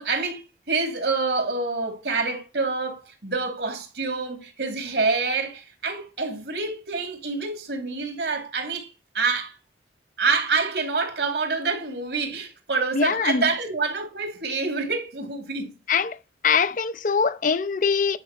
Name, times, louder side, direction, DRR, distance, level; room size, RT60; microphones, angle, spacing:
voice 1, 0.0-9.5 10.2-15.7, right 4 dB, 75° right, 2.5 m, -27 dB
voice 2, 12.9-13.4 15.9-16.2 16.4-18.2, left 5 dB, 45° left, 0.5 m, -22 dB
9.9 x 5.3 x 2.9 m
head